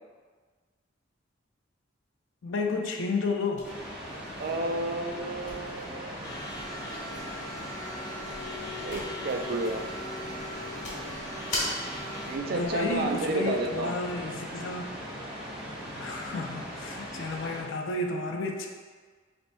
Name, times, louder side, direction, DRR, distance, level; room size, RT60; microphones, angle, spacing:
voice 1, 2.4-3.7 12.5-14.9 16.0-18.7, left 3 dB, 75° left, 2 dB, 0.5 m, -31 dB
sound 1, 3.5-13.5, left 1 dB, 40° left, 1.4 m, -42 dB
sound 2, 3.6-17.6, equal, 5° right, 0.8 m, -40 dB
voice 2, 4.3-6.2 8.8-9.8 12.2-14.0, right 2 dB, 50° right, 3 dB, 0.4 m, -31 dB
sound 3, 6.2-12.4, left 1 dB, 20° left, 0.5 m, -41 dB
4.1 x 3.4 x 2.6 m, 1.5 s
head